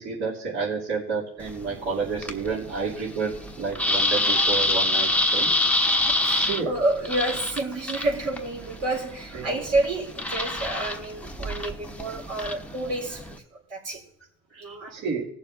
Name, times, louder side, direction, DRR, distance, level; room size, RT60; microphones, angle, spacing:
voice 1, 0.0-5.5 6.3-6.7 9.3-9.6 14.5-15.3, right 5 dB, 65° right, -7 dB, 2.8 m, -30 dB
sound 1, 1.4-13.4, left 2 dB, 5° left, 1.0 m, -27 dB
voice 2, 5.7-13.4 13.7-14.0 14.6-15.0, right 2 dB, 80° right, -2 dB, 3.8 m, -29 dB
18.5 x 7.1 x 2.6 m, 0.78 s
cardioid pair, 90°, 30 cm